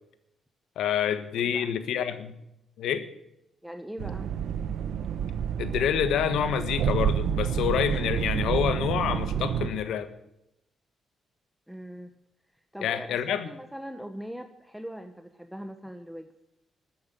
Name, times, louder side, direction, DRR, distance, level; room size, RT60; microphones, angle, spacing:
voice 1, 0.8-2.4 2.8-3.0 5.6-10.1 12.8-13.5, left 9 dB, 90° left, 11 dB, 1.4 m, -27 dB
voice 2, 3.6-4.3 11.7-12.1 12.7-16.3, equal, 5° right, 7 dB, 1.1 m, -40 dB
sound 1, 4.0-9.7, right 8 dB, 80° right, 0.9 m, -29 dB
13.5 x 9.6 x 9.1 m, 0.87 s
cardioid pair, 100°, 0 cm